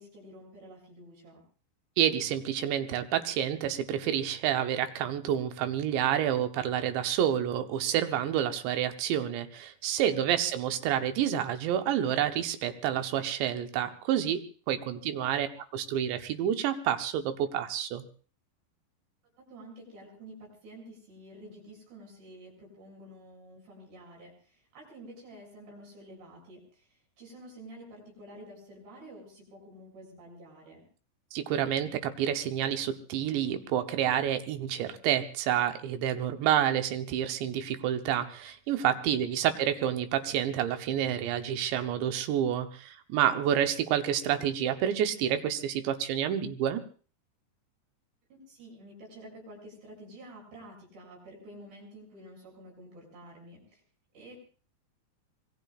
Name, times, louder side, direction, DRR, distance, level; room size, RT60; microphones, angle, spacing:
voice 1, 0.0-1.4 10.1-10.5 14.8-15.1 19.4-30.8 39.0-39.6 48.3-53.8 54.1-54.4, right 1 dB, 70° right, 0 dB, 9.0 m, -50 dB
voice 2, 2.0-14.4 14.7-18.0 31.3-46.8, right 10 dB, 85° right, 7 dB, 3.3 m, -29 dB
26.0 x 21.0 x 2.5 m, 0.40 s
omnidirectional pair, 5.0 m